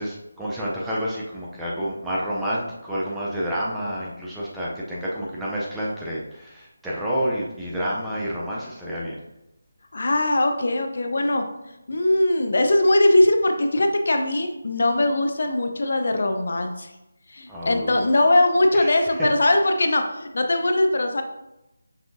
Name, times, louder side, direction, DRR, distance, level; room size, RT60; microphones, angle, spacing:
voice 1, 0.0-9.2 17.5-18.0 18.7-19.0, equal, 5° right, -7 dB, 0.4 m, -29 dB
voice 2, 9.9-11.4 11.9-16.9 17.3-21.2, left 1 dB, 55° left, 5 dB, 0.6 m, -20 dB
5.5 x 3.4 x 2.5 m, 0.91 s
figure-of-eight pair, 175°, 0 cm